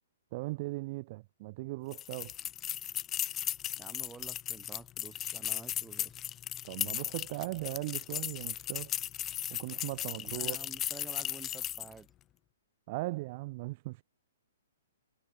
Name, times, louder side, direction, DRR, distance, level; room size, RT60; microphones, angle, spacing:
voice 1, 0.3-2.3 6.6-8.9 9.5-10.6 12.9-14.0, right 22 dB, 35° right, 0.6 m, -38 dB
sound 1, 1.9-12.0, left 12 dB, 20° left, 0.5 m, -36 dB
voice 2, 3.8-6.2 10.2-12.1, right 5 dB, 10° right, 4.0 m, -50 dB
hypercardioid pair, 150°, 0 cm